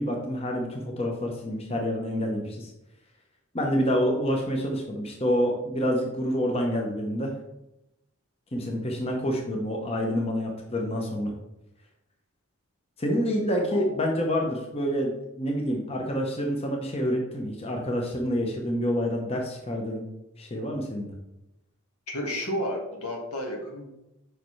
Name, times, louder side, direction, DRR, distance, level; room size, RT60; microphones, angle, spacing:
voice 1, 0.0-2.7 3.5-7.3 8.5-11.3 13.0-20.0 20.4-21.1, equal, 25° left, 0 dB, 0.8 m, -27 dB
voice 2, 22.1-23.9, equal, 80° left, 1 dB, 1.6 m, -32 dB
6.6 x 5.5 x 3.2 m, 0.90 s
head